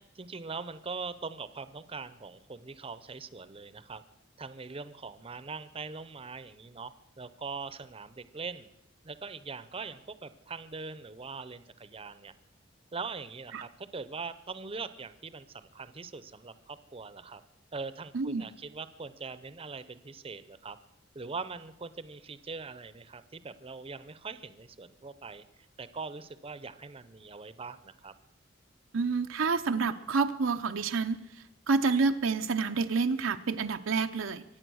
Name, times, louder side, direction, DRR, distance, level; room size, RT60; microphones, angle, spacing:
voice 1, 0.0-4.0 4.4-8.7 9.0-12.3 12.9-17.4 17.7-20.8 21.1-25.4 25.8-28.1, right 4 dB, 30° right, 13 dB, 0.7 m, -42 dB
voice 2, 18.1-18.4 28.9-31.2 31.7-34.4, right 4 dB, 90° right, 6 dB, 0.7 m, -28 dB
24.0 x 8.8 x 6.3 m, 0.83 s
head